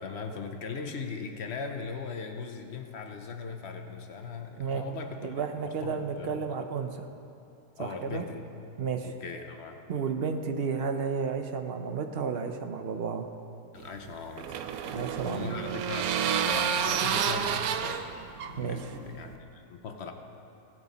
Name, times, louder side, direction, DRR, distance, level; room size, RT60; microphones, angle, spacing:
voice 1, 0.0-5.3 5.6-6.4 7.8-8.4 9.0-9.8 13.7-18.2 18.5-20.1, left 5 dB, 55° left, 5 dB, 1.0 m, -39 dB
voice 2, 5.2-7.1 7.8-8.2 8.8-9.1 9.9-13.3 14.9-15.6 18.6-18.8, right 6 dB, 55° right, 6 dB, 0.8 m, -32 dB
sound 1, 13.8-19.4, right 8 dB, 85° right, 1.1 m, -30 dB
17.0 x 8.9 x 4.1 m, 2.6 s
omnidirectional pair, 1.5 m